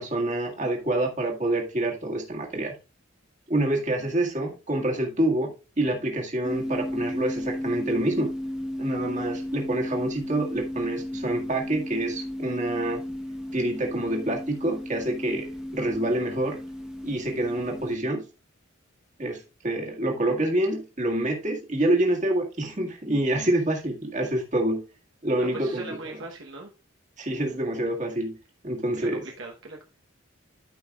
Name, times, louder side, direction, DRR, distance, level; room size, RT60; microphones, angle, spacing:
voice 1, 0.0-2.8 3.5-8.3 8.8-13.0 13.5-15.5 15.7-16.6 17.0-18.2 19.2-24.8 25.2-26.2 27.2-28.4 28.6-29.2, right 1 dB, 35° right, 1 dB, 1.8 m, -27 dB
sound 1, 6.4-18.0, left 1 dB, 5° right, 1.0 m, -34 dB
voice 2, 25.4-26.7 29.0-29.8, right 2 dB, 65° right, 0 dB, 1.1 m, -39 dB
13.0 x 5.5 x 2.4 m, 0.30 s
head